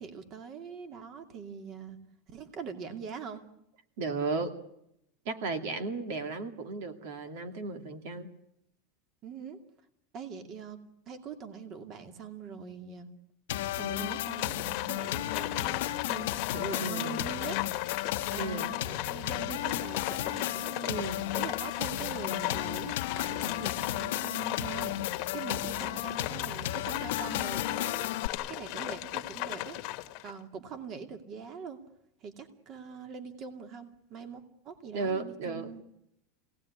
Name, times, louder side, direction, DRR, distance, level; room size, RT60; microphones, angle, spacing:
voice 1, 0.0-2.0 2.3-3.4 9.2-9.6 10.1-10.8 11.1-13.1 13.7-17.6 18.3-21.0 21.3-28.1 28.5-29.8 30.2-31.8 32.2-35.8, right 6 dB, 35° right, 7 dB, 2.5 m, -43 dB
voice 2, 4.0-4.6 5.2-8.3 16.8-17.2 18.4-18.7 20.8-21.2 23.4-23.7 34.9-35.7, right 3 dB, 65° right, 7 dB, 2.4 m, -35 dB
sound 1, 13.5-28.3, left 14 dB, 75° left, 1.0 m, -34 dB
Livestock farm animals working animals, 14.0-30.4, left 17 dB, 45° left, 1.3 m, -37 dB
26.0 x 18.0 x 9.8 m, 0.81 s
supercardioid pair, 160°, 0 cm